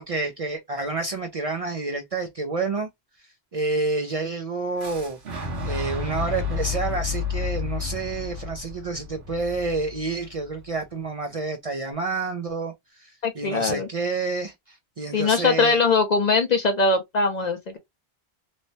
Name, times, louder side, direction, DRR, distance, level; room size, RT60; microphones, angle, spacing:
voice 1, 0.0-2.9 3.5-5.2 5.6-12.7 13.0-15.8, right 3 dB, 50° right, 0.4 m, -29 dB
Fire / Explosion, 4.8-10.7, left 5 dB, 80° right, 1.2 m, -31 dB
voice 2, 13.2-13.9 15.1-17.8, left 4 dB, 55° left, 0.5 m, -21 dB
3.1 x 2.1 x 2.6 m
omnidirectional pair, 1.0 m